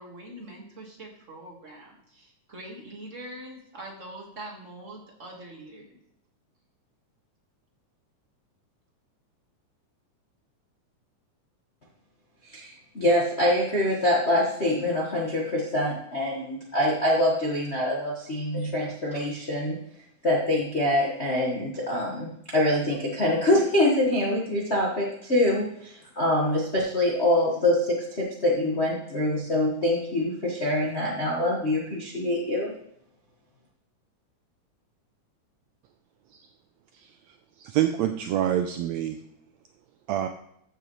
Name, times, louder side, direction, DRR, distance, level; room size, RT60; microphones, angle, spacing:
voice 1, 0.0-5.9, right 1 dB, 30° right, -1 dB, 1.6 m, -43 dB
voice 2, 12.5-19.7 20.2-32.7, left 1 dB, 35° left, -4 dB, 1.0 m, -25 dB
voice 3, 37.6-39.2 40.1-40.3, right 11 dB, 80° right, 6 dB, 1.6 m, -26 dB
14.0 x 6.7 x 3.1 m, 0.72 s
omnidirectional pair, 3.5 m